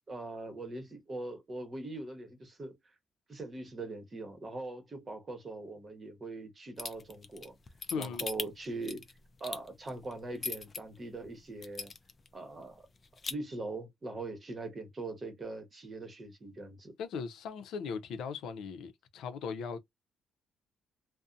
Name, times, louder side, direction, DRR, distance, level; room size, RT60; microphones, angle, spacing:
voice 1, 0.1-2.8 3.3-7.6 7.9-9.0 9.4-11.9 12.3-12.8 13.3-16.9, right 2 dB, 30° right, 0.9 m, -41 dB
sound 1, 6.8-10.8 11.2-11.3 11.6-12.3 12.6-12.7 13.0-13.3, left 4 dB, 30° left, 0.4 m, -39 dB
voice 2, 7.9-8.3 17.0-19.8, left 6 dB, 80° left, 0.5 m, -38 dB
2.6 x 2.1 x 2.4 m
cardioid pair, 115°, 0 cm